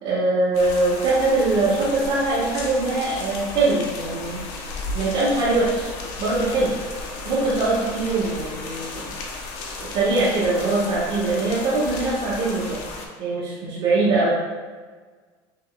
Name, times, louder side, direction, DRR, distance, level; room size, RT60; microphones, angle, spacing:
voice 1, 0.0-4.4 4.9-5.9 6.2-6.7 7.2-9.1 9.9-12.8 13.2-14.3, right 2 dB, 60° right, -11 dB, 1.4 m, -22 dB
sound 1, 0.5-13.1, left 3 dB, 75° left, 0.7 m, -34 dB
5.9 x 2.9 x 2.3 m, 1.4 s
cardioid pair, 125°, 11 cm